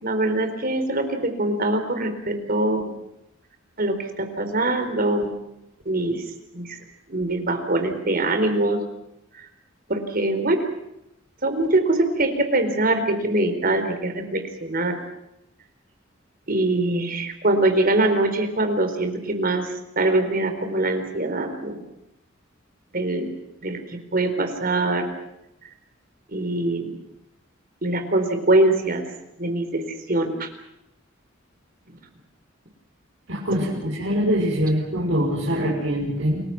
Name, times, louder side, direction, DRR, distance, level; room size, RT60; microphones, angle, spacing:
voice 1, 0.0-2.9 3.8-5.4 5.9-6.2 6.5-6.8 7.1-8.8 9.9-10.6 11.4-15.0 16.5-19.7 20.0-21.8 22.9-23.3 23.6-23.8 24.1-25.1 26.3-26.9 27.8-29.1 29.4-30.5 33.5-33.6, right 2 dB, 50° right, 7 dB, 4.3 m, -23 dB
voice 2, 33.3-36.4, equal, 70° right, -5 dB, 6.6 m, -23 dB
29.0 x 21.0 x 6.1 m, 0.86 s
head